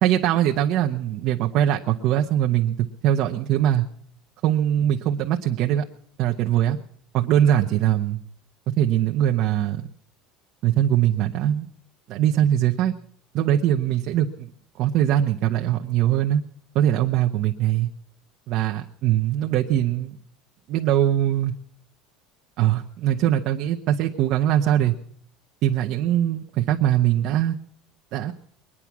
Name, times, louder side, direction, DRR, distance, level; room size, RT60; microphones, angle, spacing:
voice 1, 0.0-2.8 3.0-3.8 4.4-5.8 6.2-6.8 7.1-8.2 8.8-9.9 10.6-11.7 12.1-12.9 13.3-14.5 14.8-16.4 16.7-17.9 18.5-20.2 20.7-21.5 22.6-24.9 25.6-27.6 28.1-28.3, right 11 dB, 50° right, 3 dB, 0.9 m, -21 dB
22.5 x 9.9 x 6.0 m, 0.62 s
cardioid pair, 155°, 0 cm